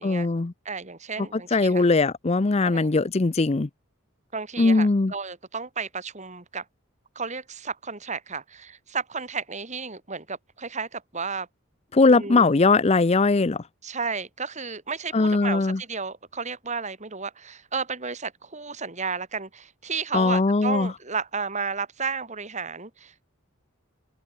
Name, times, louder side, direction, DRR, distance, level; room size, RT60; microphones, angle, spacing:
voice 1, 0.0-0.5 1.5-3.7 4.6-5.1 11.9-13.6 15.1-15.8 20.1-20.9, left 3 dB, 30° left, 0.5 m, -20 dB
voice 2, 0.7-1.8 2.6-2.9 4.3-6.6 7.2-11.5 12.1-12.5 13.8-23.3, right 5 dB, 35° right, 3.5 m, -33 dB
open air
head